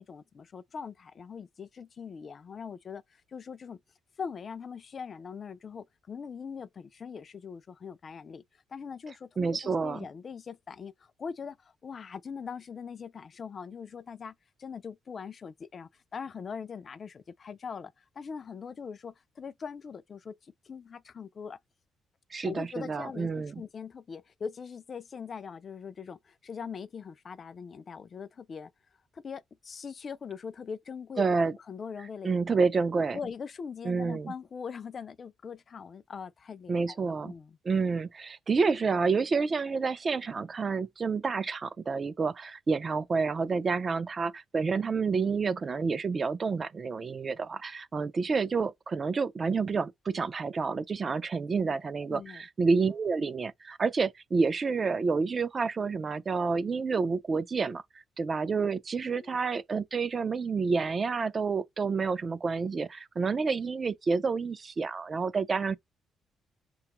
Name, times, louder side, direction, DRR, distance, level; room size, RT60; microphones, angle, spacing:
voice 1, 0.0-3.8 4.2-8.4 8.7-21.6 22.4-28.7 29.1-31.3 31.7-32.4 33.1-37.6 52.1-52.4 59.1-59.4, left 6 dB, 45° left, 0.3 m, -41 dB
voice 2, 9.4-10.1 22.3-23.6 31.2-31.5 32.2-33.2 33.8-34.3 36.7-37.3 37.6-57.8 58.2-65.8, right 4 dB, 40° right, 0.4 m, -29 dB
5.7 x 2.3 x 2.9 m
cardioid pair, 90°, 0 cm